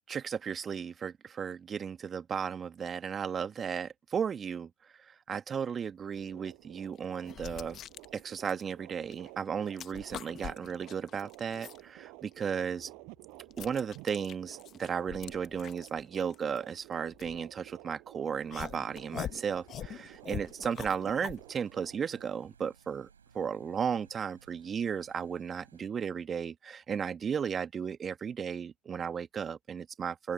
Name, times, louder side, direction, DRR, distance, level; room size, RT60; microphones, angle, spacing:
voice 1, 0.1-4.7 5.0-7.8 8.1-12.9 13.6-23.1 23.3-30.3, right 7 dB, 30° right, 1.6 m, -35 dB
sound 1, 6.2-22.3, right 29 dB, 60° right, 6.1 m, -53 dB
sound 2, 6.3-6.4 7.0-9.3 9.6-11.8 12.3-17.9 18.5-21.4, left 10 dB, 40° left, 1.2 m, -44 dB
sound 3, 18.8-25.9, right 7 dB, 85° right, 7.3 m, -62 dB
open air
hypercardioid pair, 80°, 0 cm